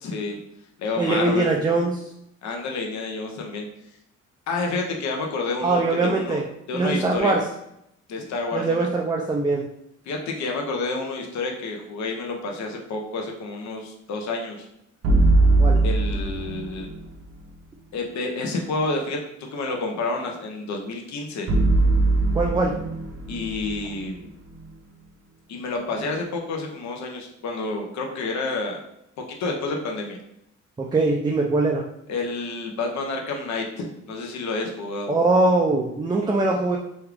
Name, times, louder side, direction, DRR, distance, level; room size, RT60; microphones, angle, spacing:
voice 1, 0.0-0.4 0.8-1.5 2.4-3.7 4.5-6.4 6.7-7.3 8.1-8.9 10.1-14.7 15.8-16.9 17.9-21.5 23.3-24.2 25.5-28.8 29.3-30.2 32.1-35.1, left 3 dB, 70° left, 1 dB, 0.7 m, -29 dB
voice 2, 1.0-2.0 5.6-6.4 6.7-7.5 8.5-9.7 15.6-15.8 22.3-22.8 30.8-31.8 35.1-36.8, right 3 dB, 15° right, -1 dB, 0.4 m, -22 dB
sound 1, 15.0-17.2 21.5-24.7, right 2 dB, 50° right, 0.7 m, -21 dB
3.1 x 2.4 x 3.3 m, 0.80 s
cardioid pair, 90°, 30 cm